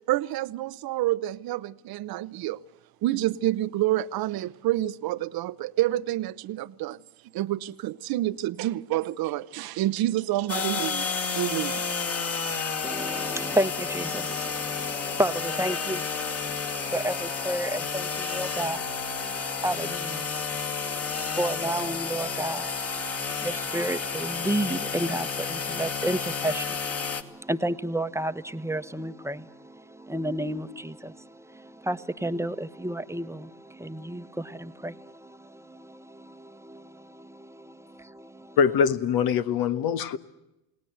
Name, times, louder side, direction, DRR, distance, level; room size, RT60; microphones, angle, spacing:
voice 1, 0.1-2.6 3.0-7.0 7.3-11.1 11.4-11.8, right 15 dB, 60° right, 0.9 m, -28 dB
sound 1, 10.5-27.2, left 5 dB, 35° left, 2.5 m, -31 dB
voice 2, 12.8-38.6, right 1 dB, 5° right, 1.2 m, -32 dB
voice 3, 38.6-40.2, left 7 dB, 55° left, 1.4 m, -23 dB
29.0 x 18.5 x 8.0 m
hypercardioid pair, 70°, 42 cm